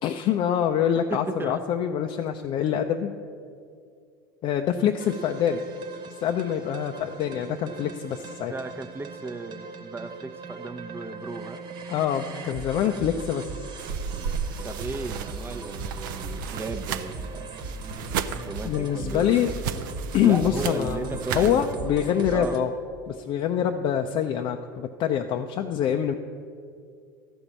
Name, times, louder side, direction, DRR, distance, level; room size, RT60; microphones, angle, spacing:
voice 1, 0.0-3.1 4.4-5.6 6.2-8.5 11.9-13.7 18.6-19.5 20.1-22.7 23.1-26.1, left 9 dB, 50° left, 4 dB, 0.5 m, -25 dB
voice 2, 1.1-1.6 8.5-11.6 12.8-12.9 14.6-17.6 18.4-19.4 20.2-21.7 22.3-22.6, right 3 dB, 20° right, 9 dB, 0.7 m, -35 dB
sound 1, 5.0-22.6, right 3 dB, 45° right, 1.2 m, -38 dB
sound 2, 13.8-21.7, right 7 dB, 75° right, 0.5 m, -34 dB
13.0 x 5.3 x 7.3 m, 2.3 s
hypercardioid pair, 80°, 11 cm